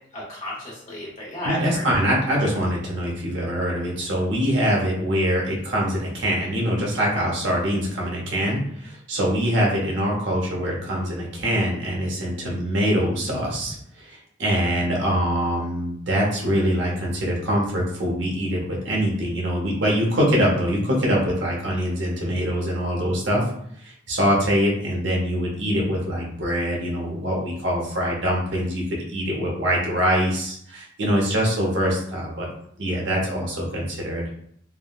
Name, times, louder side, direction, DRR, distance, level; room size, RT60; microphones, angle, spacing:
voice 1, 0.1-2.1, left 1 dB, 35° left, -6 dB, 1.2 m, -33 dB
voice 2, 1.4-23.4 23.8-32.5 32.8-34.2, equal, 60° right, -2 dB, 0.8 m, -24 dB
3.4 x 2.2 x 2.3 m, 0.67 s
head